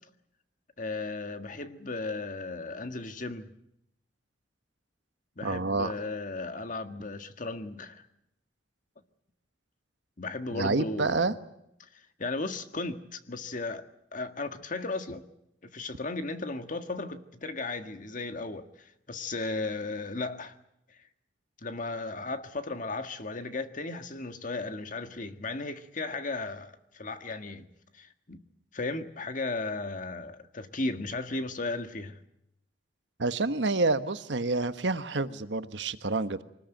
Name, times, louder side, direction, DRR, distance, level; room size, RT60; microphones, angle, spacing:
voice 1, 0.8-3.4 5.4-8.0 10.2-11.4 12.2-13.8 14.1-15.2 15.6-20.6 21.6-27.7 28.0-28.4 28.7-32.2, left 3 dB, 45° left, 1.7 m, -35 dB
voice 2, 5.4-5.9 10.5-11.3 33.2-36.4, right 3 dB, 85° right, 1.3 m, -28 dB
24.5 x 20.0 x 9.1 m
head